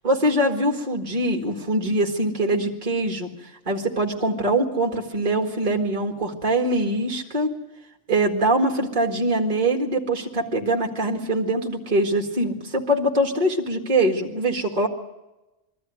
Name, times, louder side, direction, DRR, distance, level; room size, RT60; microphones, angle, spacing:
voice 1, 0.0-3.3 3.7-7.5 8.1-14.9, right 1 dB, 35° right, 1 dB, 2.1 m, -23 dB
22.5 x 13.5 x 9.4 m, 1.0 s
omnidirectional pair, 1.3 m